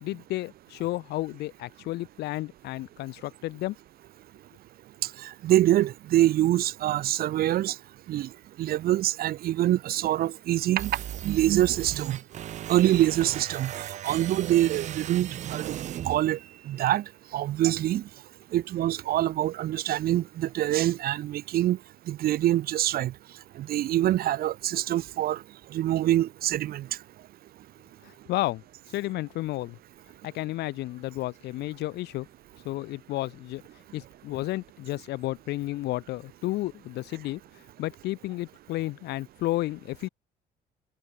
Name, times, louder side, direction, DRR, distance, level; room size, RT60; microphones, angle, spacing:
voice 1, 0.0-3.7 28.0-28.6 28.9-29.8 30.2-32.3 32.6-33.6 33.9-37.4 37.8-40.1, left 17 dB, 80° left, 1.2 m, -32 dB
voice 2, 5.4-7.7 8.1-8.3 8.6-10.9 11.2-12.2 12.7-13.7 14.0-15.7 16.1-16.4 16.7-17.0 17.3-18.0 18.5-21.8 22.1-23.1 23.7-25.4 25.7-26.8, right 13 dB, 65° right, 0.9 m, -25 dB
sound 1, 10.8-16.8, right 11 dB, 45° right, 0.4 m, -36 dB
cardioid pair, 110°, 17 cm